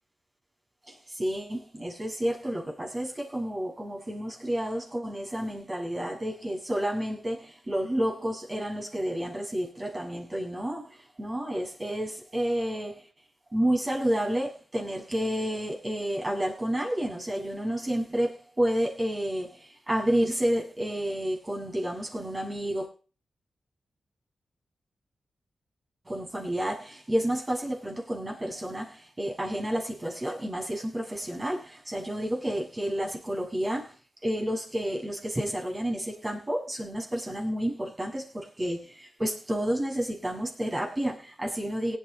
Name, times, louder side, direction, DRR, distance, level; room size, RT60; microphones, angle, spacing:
voice 1, 0.9-13.0 13.5-22.9 26.1-33.9 34.2-42.0, equal, 30° right, 7.1 m, -30 dB
18.0 x 9.7 x 4.2 m
supercardioid pair, 45°, 0 cm